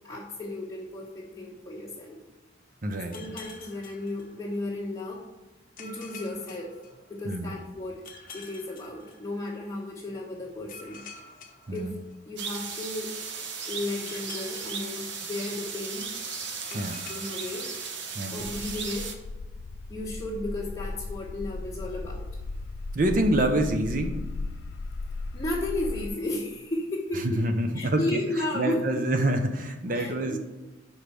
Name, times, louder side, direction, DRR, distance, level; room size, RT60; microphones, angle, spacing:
voice 1, 0.0-2.2 3.1-5.3 5.8-6.7 7.1-8.0 8.3-11.0 11.7-12.0 12.2-13.1 13.7-16.2 16.7-17.7 18.3-19.1 19.9-22.3 25.3-27.4 27.7-29.0 29.9-30.4, left 1 dB, 15° left, -9 dB, 1.4 m, -34 dB
voice 2, 2.8-3.3 7.3-7.5 11.7-11.9 16.7-17.0 18.1-18.4 22.9-24.2 27.2-28.2 28.5-30.4, right 1 dB, 45° right, 6 dB, 0.6 m, -26 dB
sound 1, 3.1-4.9 5.8-7.5 8.0-9.8 10.7-12.7 14.0-15.8 16.7-18.5, left 4 dB, 45° left, 0.9 m, -48 dB
sound 2, 12.4-19.1, right 5 dB, 70° right, 1.0 m, -36 dB
sound 3, 18.4-26.1, left 3 dB, 60° left, 0.4 m, -36 dB
5.5 x 5.1 x 6.2 m, 1.1 s
head